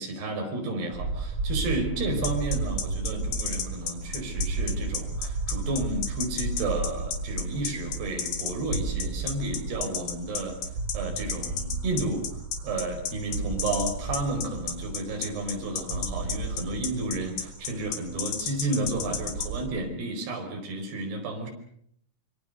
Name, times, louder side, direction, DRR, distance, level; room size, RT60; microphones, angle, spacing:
voice 1, 0.0-10.6 10.9-12.2 12.6-21.5, right 2 dB, 65° right, 2 dB, 6.8 m, -32 dB
sound 1, 0.9-19.8, right 3 dB, 30° right, 5.0 m, -34 dB
sound 2, 2.2-19.5, left 8 dB, 65° left, 4.1 m, -32 dB
25.0 x 24.5 x 6.7 m, 0.68 s
omnidirectional pair, 5.1 m